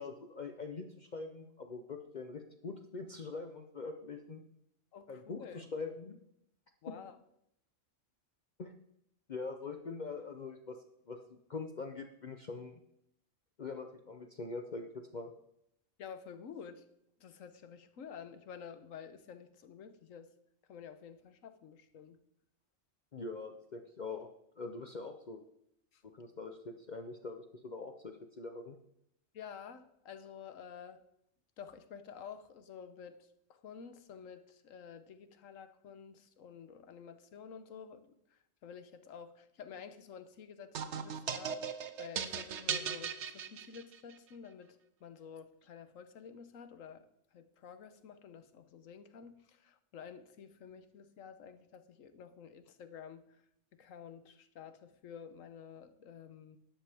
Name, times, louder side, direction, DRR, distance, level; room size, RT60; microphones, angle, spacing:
voice 1, 0.0-4.4 5.1-6.2 8.6-8.8 9.3-10.8 11.1-12.7 13.6-15.3 23.1-24.3 24.6-25.4 26.0-28.8, left 4 dB, 45° left, 5 dB, 0.7 m, -43 dB
voice 2, 4.9-5.6 6.8-7.2 16.0-16.8 17.2-20.3 20.7-22.2 25.9-26.0 29.3-31.0 31.6-41.6 42.0-47.1 47.3-53.3 53.7-56.6, left 7 dB, 90° left, 11 dB, 1.3 m, -50 dB
sound 1, 40.7-44.1, right 7 dB, 65° right, 1.0 m, -38 dB
12.5 x 10.0 x 3.5 m, 0.77 s
omnidirectional pair, 1.3 m